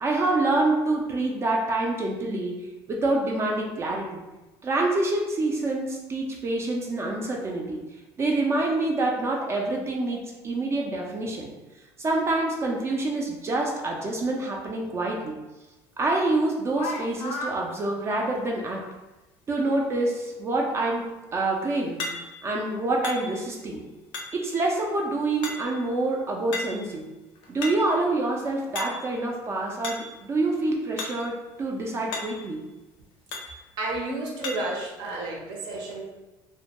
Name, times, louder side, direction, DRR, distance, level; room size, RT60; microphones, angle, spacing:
voice 1, 0.0-4.2 4.6-7.8 8.2-11.5 12.0-15.3 16.0-18.8 19.5-22.0 22.4-23.8 24.3-27.1 27.5-32.6, right 2 dB, 30° right, -1 dB, 0.4 m, -26 dB
sound 1, 16.1-16.2 16.7-17.6 22.0-22.5 23.0-23.6 24.1-24.6 25.4-25.9 26.5-26.9 27.4-28.0 28.8-29.2 29.8-30.2 31.0-31.3 31.6-31.7 32.1-32.5 33.3-33.6 34.4-34.8, left 3 dB, 75° left, 0.5 m, -35 dB
voice 2, 33.8-36.0, right 2 dB, 65° right, -1 dB, 0.7 m, -31 dB
2.1 x 2.1 x 2.8 m, 1.1 s
cardioid pair, 125°, 9 cm